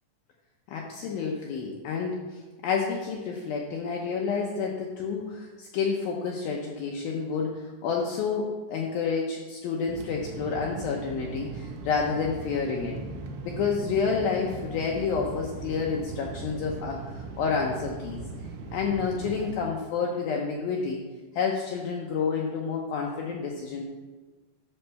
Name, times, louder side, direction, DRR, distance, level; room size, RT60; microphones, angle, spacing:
voice 1, 0.7-13.0 13.4-18.2 18.7-21.0 21.3-23.8, left 5 dB, 75° left, 0 dB, 2.3 m, -29 dB
sound 1, 9.9-19.6, right 4 dB, 90° right, 1.8 m, -39 dB
11.5 x 4.4 x 6.8 m, 1.3 s
omnidirectional pair, 4.9 m